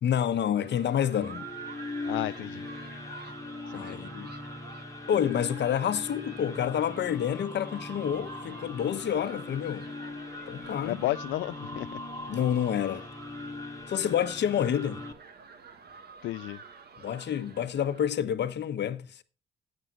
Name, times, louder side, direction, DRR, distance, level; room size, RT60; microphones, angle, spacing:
voice 1, 0.0-1.5 3.7-4.3 5.1-9.9 10.5-11.0 12.3-13.0 13.9-15.0 17.0-19.2, left 9 dB, 60° left, 1.2 m, -28 dB
sound 1, 0.6-18.1, right 5 dB, 55° right, 1.9 m, -49 dB
sound 2, 0.9-15.1, left 2 dB, 15° left, 1.8 m, -40 dB
voice 2, 2.1-2.7 3.7-4.0 10.8-12.0 16.2-16.6, left 16 dB, 80° left, 0.4 m, -33 dB
16.0 x 8.9 x 2.6 m
cardioid pair, 90°, 20 cm